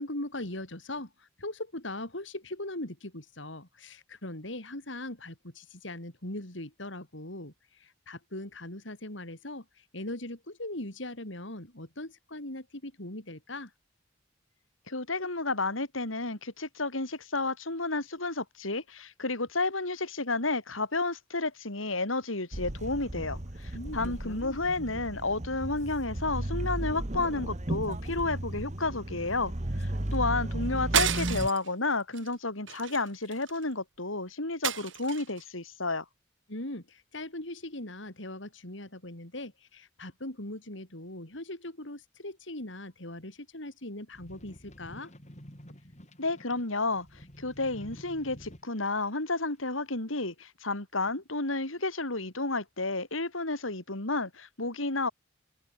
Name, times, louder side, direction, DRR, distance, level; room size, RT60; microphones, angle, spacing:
voice 1, 0.0-13.7 23.7-24.6 36.5-45.1, left 1 dB, 65° left, 4.5 m, -40 dB
voice 2, 14.9-29.5 29.8-36.0 46.2-47.1 47.4-55.1, left 3 dB, 90° left, 4.8 m, -31 dB
sound 1, 22.5-31.5, right 1 dB, 35° right, 1.6 m, -34 dB
sound 2, 30.9-31.7 32.1-32.3 32.7-33.6 34.6-35.4, right 9 dB, 70° right, 2.3 m, -30 dB
sound 3, 44.1-49.0 49.6-49.7, equal, 35° left, 7.0 m, -50 dB
head